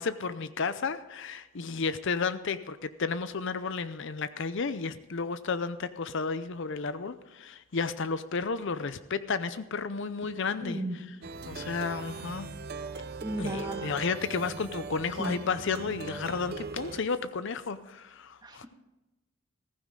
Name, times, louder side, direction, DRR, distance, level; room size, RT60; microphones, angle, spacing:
voice 1, 0.0-11.0 11.5-12.5 13.4-18.7, left 5 dB, 55° left, 13 dB, 0.6 m, -32 dB
voice 2, 10.6-11.0 13.2-13.8 15.2-15.3 18.4-18.7, right 1 dB, 20° right, 3 dB, 1.8 m, -34 dB
Plucked string instrument, 11.2-17.0, right 4 dB, 45° right, 0.6 m, -40 dB
15.0 x 15.0 x 3.8 m, 1.0 s
head